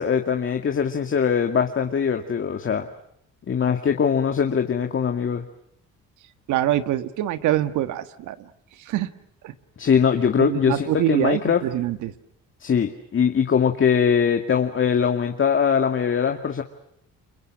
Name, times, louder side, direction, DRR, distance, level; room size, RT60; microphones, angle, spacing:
voice 1, 0.0-2.9 3.5-5.4 9.8-11.6 12.6-16.6, left 7 dB, 45° left, 5 dB, 2.2 m, -21 dB
voice 2, 6.5-8.3 8.8-9.1 9.4-9.5 10.4-12.1, right 13 dB, 85° right, 11 dB, 1.6 m, -24 dB
30.0 x 24.0 x 6.5 m, 0.72 s
cardioid pair, 95°, 29 cm